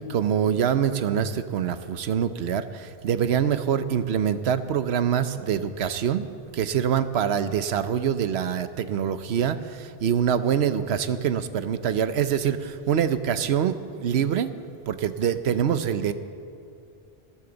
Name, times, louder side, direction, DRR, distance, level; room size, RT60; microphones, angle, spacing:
voice 1, 0.0-6.3 6.5-14.5 14.9-16.1, right 8 dB, 85° right, 12 dB, 1.0 m, -25 dB
21.0 x 15.5 x 4.0 m, 2.6 s
omnidirectional pair, 1.1 m